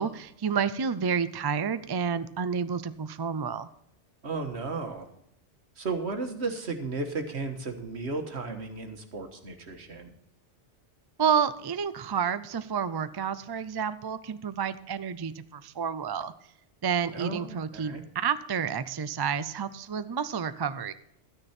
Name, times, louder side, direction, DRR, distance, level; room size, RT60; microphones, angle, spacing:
voice 1, 0.0-3.7 11.2-16.3 16.8-20.9, right 7 dB, 40° right, 13 dB, 0.3 m, -30 dB
voice 2, 4.2-5.1 5.8-10.1 17.1-18.0, right 3 dB, 70° right, 6 dB, 1.7 m, -34 dB
13.0 x 9.8 x 4.3 m, 0.76 s
omnidirectional pair, 1.2 m